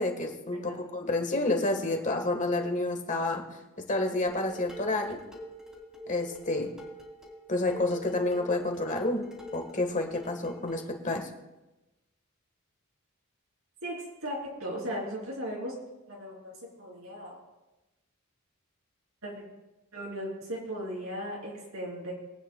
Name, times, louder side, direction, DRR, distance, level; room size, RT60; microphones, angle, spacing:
voice 1, 0.0-3.4 3.9-5.2 6.1-6.7 7.5-9.3 9.5-11.3, left 2 dB, 40° left, 3 dB, 1.5 m, -29 dB
Dishes pots and pans, 4.3-10.9, right 1 dB, 5° right, 2.6 m, -47 dB
voice 2, 13.8-15.7 16.1-17.4 19.2-19.5 19.9-22.1, equal, 80° right, -2 dB, 3.5 m, -37 dB
23.5 x 8.9 x 2.3 m, 1.0 s
head